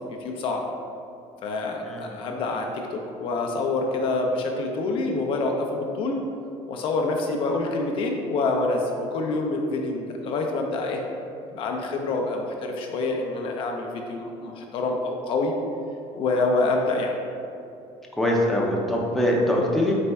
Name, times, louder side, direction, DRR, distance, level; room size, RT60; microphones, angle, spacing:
voice 1, 0.1-0.6 1.4-6.2 6.7-11.0 11.5-15.5 16.1-17.2, left 3 dB, 50° left, 2 dB, 0.4 m, -26 dB
voice 2, 1.8-2.1 18.2-19.9, left 1 dB, ahead, -3 dB, 0.5 m, -23 dB
4.2 x 3.3 x 3.4 m, 2.6 s
cardioid pair, 140°, 11 cm